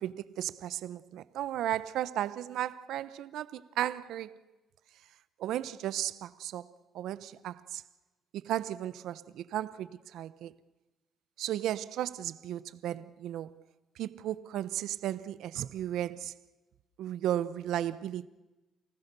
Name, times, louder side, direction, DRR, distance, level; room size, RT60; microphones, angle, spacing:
voice 1, 0.0-4.4 5.4-7.8 8.3-10.6 11.4-13.5 14.0-16.3 17.0-18.3, right 12 dB, 85° right, 0.9 m, -35 dB
29.0 x 19.5 x 6.9 m
cardioid pair, 140°, 0 cm